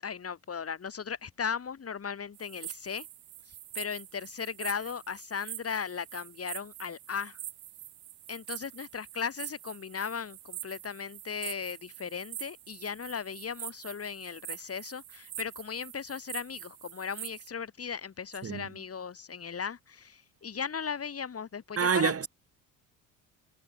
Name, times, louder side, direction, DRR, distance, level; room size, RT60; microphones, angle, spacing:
voice 1, 0.0-3.1 3.7-7.4 8.3-22.1, left 6 dB, 35° left, 7.6 m, -37 dB
sound 1, 2.3-17.5, right 14 dB, 55° right, 5.4 m, -45 dB
voice 2, 21.8-22.3, right 6 dB, 35° right, 4.6 m, -27 dB
hypercardioid pair, 60°, 40 cm